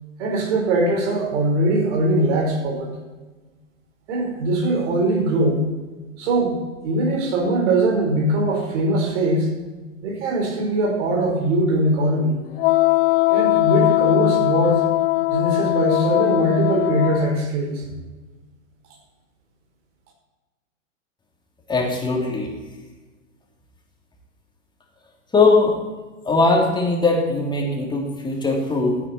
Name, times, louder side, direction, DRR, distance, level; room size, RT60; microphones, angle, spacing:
voice 1, 0.2-2.9 4.1-5.6 6.2-9.5 10.0-12.3 13.3-14.8 15.3-17.9, right 1 dB, 60° right, 0 dB, 4.4 m, -21 dB
Wind instrument woodwind instrument, 12.6-17.3, left 22 dB, 45° left, 0.7 m, -20 dB
voice 2, 21.7-22.5 25.3-25.8 26.2-29.0, left 3 dB, 10° left, -1 dB, 2.7 m, -20 dB
14.0 x 9.2 x 4.3 m, 1.2 s
hypercardioid pair, 120°, 39 cm